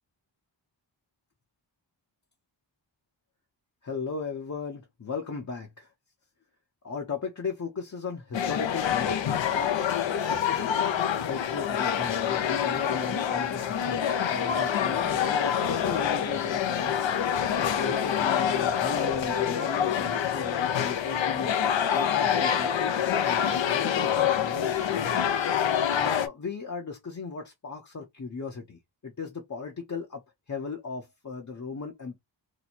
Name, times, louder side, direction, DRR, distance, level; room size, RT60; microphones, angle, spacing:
voice 1, 3.8-5.9 6.8-9.2 9.5-17.0 17.6-21.5 21.9-25.1 25.9-30.2 30.5-32.2, left 5 dB, 40° left, 0.8 m, -36 dB
sound 1, 8.3-26.3, left 8 dB, 75° left, 0.6 m, -26 dB
3.0 x 2.2 x 4.2 m
wide cardioid pair, 100°, 46 cm